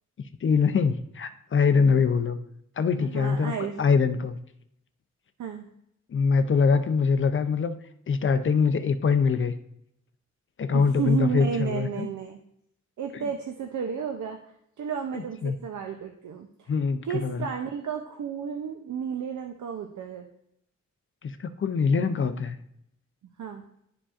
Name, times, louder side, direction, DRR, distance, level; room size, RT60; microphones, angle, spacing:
voice 1, 0.2-2.4 2.8-3.5 3.8-4.4 6.1-7.8 8.1-9.5 10.6-12.1 13.1-13.3 15.1-15.6 16.7-17.5 21.2-22.5, left 5 dB, 45° left, 11 dB, 0.4 m, -23 dB
voice 2, 3.1-3.8 5.4-5.7 10.7-12.4 13.0-14.4 14.8-16.7 17.0-20.3 23.4-23.6, right 7 dB, 85° right, 5 dB, 0.6 m, -32 dB
11.5 x 4.9 x 2.4 m, 0.77 s
wide cardioid pair, 135°, 29 cm